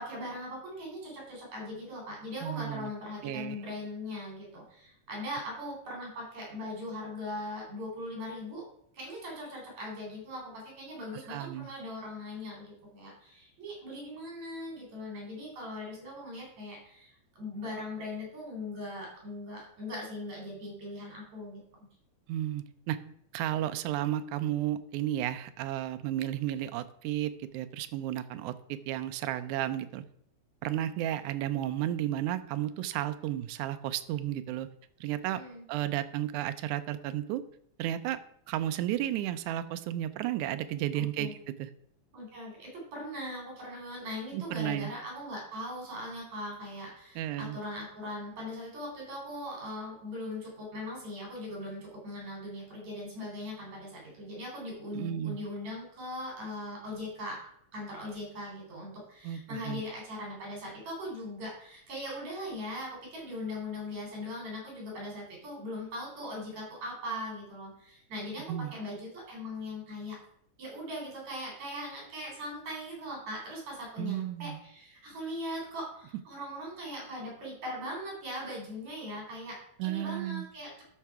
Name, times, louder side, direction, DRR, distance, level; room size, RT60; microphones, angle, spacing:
voice 1, 0.0-8.6 8.9-21.6 35.3-35.6 40.9-41.3 42.1-57.4 57.7-70.2 70.6-80.8, left 1 dB, 65° right, -2 dB, 4.9 m, -40 dB
voice 2, 2.4-2.9 3.2-3.6 11.3-11.7 22.3-23.0 23.3-30.0 30.6-34.7 35.0-35.4 35.7-37.4 37.8-38.2 38.5-41.3 41.6-41.7 44.3-44.9 47.2-47.6 54.9-55.4 59.2-59.8 68.5-68.7 74.0-74.6 79.8-80.5, right 12 dB, 85° right, 11 dB, 2.0 m, -33 dB
12.0 x 5.6 x 4.7 m, 0.68 s
omnidirectional pair, 3.4 m